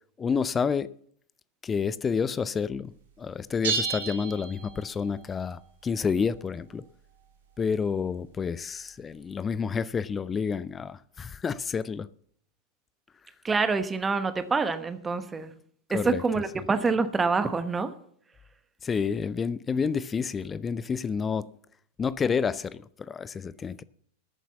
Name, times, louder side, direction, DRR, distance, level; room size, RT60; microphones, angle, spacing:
voice 1, 0.2-0.9 1.6-2.9 3.2-6.8 7.6-12.1 15.9-16.7 18.8-21.5 22.0-23.8, left 6 dB, 20° left, 0.4 m, -29 dB
sound 1, 3.6-5.2, right 5 dB, 60° right, 2.8 m, -31 dB
voice 2, 13.4-15.5 15.9-17.9, right 4 dB, 15° right, 1.1 m, -26 dB
13.5 x 7.3 x 7.2 m
figure-of-eight pair, 90°, 0 cm